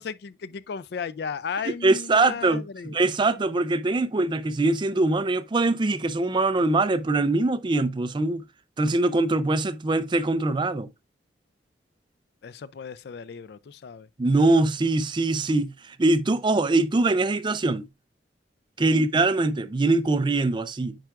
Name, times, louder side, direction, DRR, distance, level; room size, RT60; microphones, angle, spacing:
voice 1, 0.0-3.0 12.4-14.1 18.8-19.0, left 6 dB, 60° left, 0.4 m, -35 dB
voice 2, 1.8-2.6 2.9-8.4 8.8-10.9 14.2-17.9 18.8-21.0, right 2 dB, 25° right, 0.4 m, -23 dB
8.9 x 4.6 x 2.4 m
head